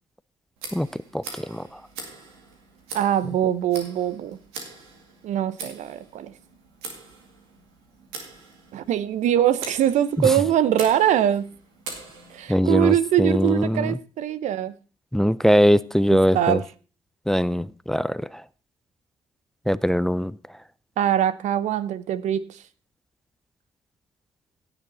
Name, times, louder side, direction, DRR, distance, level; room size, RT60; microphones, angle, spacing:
Tick, 0.6-12.6, right 4 dB, 85° right, 2.3 m, -42 dB
voice 1, 0.7-1.8 10.2-10.4 12.5-14.0 15.1-16.6 17.3-18.4 19.7-20.4, equal, 5° left, 0.5 m, -22 dB
voice 2, 2.9-4.4 5.2-6.3 8.7-11.5 12.3-14.7 16.1-16.6 21.0-22.6, right 10 dB, 65° right, 0.8 m, -23 dB
16.5 x 7.1 x 4.2 m
hypercardioid pair, 45°, 13 cm